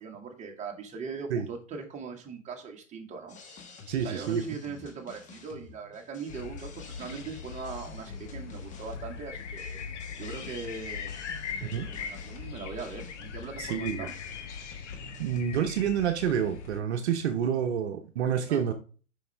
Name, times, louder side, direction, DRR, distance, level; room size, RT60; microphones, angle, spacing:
voice 1, 0.0-3.4 3.7-9.8 10.2-11.1 11.6-14.1 18.5-18.7, right 5 dB, 20° right, 1 dB, 1.7 m, -40 dB
sound 1, 3.3-16.4, left 5 dB, 20° left, 1.2 m, -50 dB
voice 2, 3.9-4.4 11.6-11.9 13.6-14.1 15.2-18.7, right 8 dB, 55° right, 6 dB, 1.0 m, -28 dB
sound 2, 6.3-16.8, left 6 dB, 65° left, 1.3 m, -40 dB
6.8 x 5.5 x 3.3 m, 0.37 s
figure-of-eight pair, 110°, 39 cm